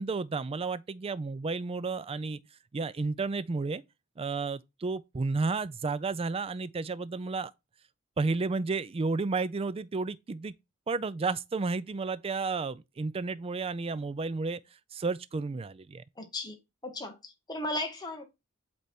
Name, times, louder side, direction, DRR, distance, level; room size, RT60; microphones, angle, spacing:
voice 1, 0.0-2.4 2.7-3.8 4.2-7.5 8.2-10.5 10.9-14.6 14.9-16.0, right 4 dB, 30° right, 0.4 m, -32 dB
voice 2, 16.2-16.5 16.8-18.2, left 1 dB, 20° left, 1.4 m, -36 dB
8.1 x 3.4 x 4.3 m
head